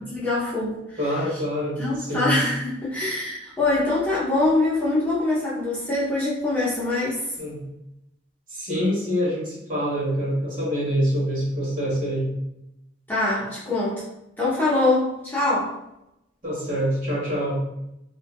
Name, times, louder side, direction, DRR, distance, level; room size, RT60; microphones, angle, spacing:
voice 1, 0.1-1.0 1.8-7.2 13.1-14.0 14.4-15.7, left 2 dB, 10° left, -9 dB, 0.6 m, -24 dB
voice 2, 1.0-2.3 7.4-7.6 8.5-12.3 16.4-17.6, equal, 45° right, -7 dB, 1.2 m, -25 dB
2.6 x 2.4 x 2.3 m, 0.86 s
head